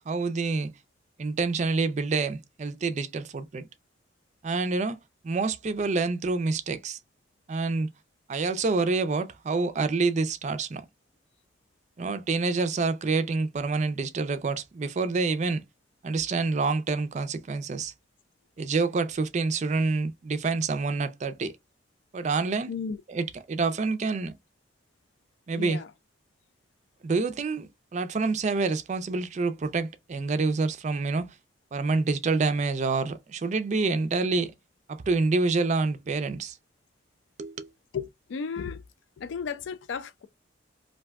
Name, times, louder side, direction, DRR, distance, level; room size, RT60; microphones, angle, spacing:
voice 1, 0.1-0.7 1.2-3.6 4.4-5.0 5.2-7.0 7.5-7.9 8.3-10.9 12.0-15.6 16.0-17.9 18.6-21.5 22.1-22.7 23.1-24.3 25.5-25.8 27.0-31.3 31.7-34.5 34.9-36.6 37.4-37.7, right 3 dB, 40° right, 0.4 m, -27 dB
voice 2, 22.7-23.0 25.6-25.9 37.9-38.8 39.2-40.3, left 6 dB, 75° left, 0.4 m, -34 dB
2.6 x 2.2 x 3.4 m
head